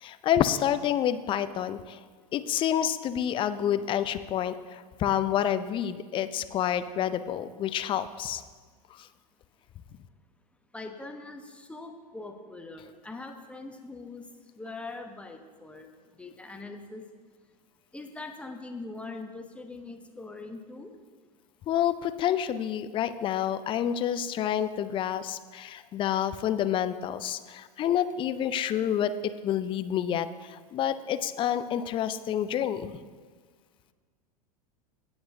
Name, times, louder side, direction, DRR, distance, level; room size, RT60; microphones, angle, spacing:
voice 1, 0.0-2.0 2.3-8.4 21.7-33.0, left 10 dB, 25° left, 12 dB, 0.5 m, -28 dB
voice 2, 10.7-14.3 14.5-15.9 16.2-17.0 17.9-20.9, left 3 dB, 5° left, 5 dB, 1.0 m, -42 dB
18.5 x 7.9 x 2.7 m, 1.5 s
figure-of-eight pair, 90°, 20 cm